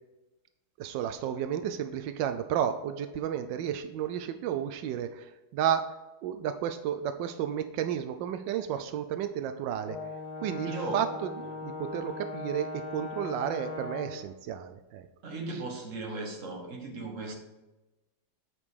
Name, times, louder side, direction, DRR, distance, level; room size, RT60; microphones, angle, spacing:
voice 1, 0.8-5.9 6.2-10.0 10.4-15.1 15.5-15.6 17.3-17.4, right 9 dB, 90° right, 9 dB, 1.3 m, -32 dB
Brass instrument, 9.8-14.2, left 3 dB, 50° left, 1.7 m, -39 dB
voice 2, 10.7-11.0 15.2-17.3, right 2 dB, 45° right, 1 dB, 1.7 m, -37 dB
8.4 x 5.2 x 4.7 m, 1.1 s
omnidirectional pair, 1.9 m